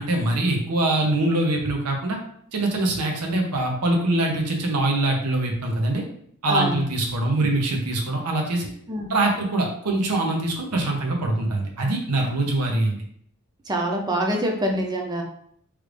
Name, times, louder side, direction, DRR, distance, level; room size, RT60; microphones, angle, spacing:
voice 1, 0.0-2.2 2.5-6.0 6.4-8.7 9.1-13.0, right 2 dB, 90° right, 1 dB, 0.7 m, -23 dB
voice 2, 6.5-6.9 8.9-9.1 13.7-15.2, right 1 dB, 20° right, 1 dB, 0.5 m, -25 dB
3.2 x 2.5 x 3.2 m, 0.66 s
head